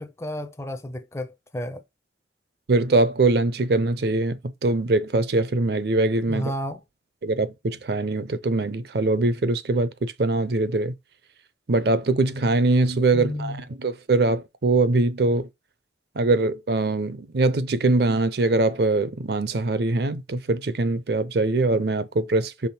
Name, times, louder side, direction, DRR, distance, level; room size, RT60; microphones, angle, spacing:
voice 1, 0.0-1.8 6.3-6.8 13.1-13.6, left 1 dB, 15° left, 0.4 m, -32 dB
voice 2, 2.7-6.5 7.2-10.9 11.7-15.5 16.2-22.7, right 2 dB, 60° right, 0.5 m, -22 dB
6.1 x 3.5 x 4.3 m
head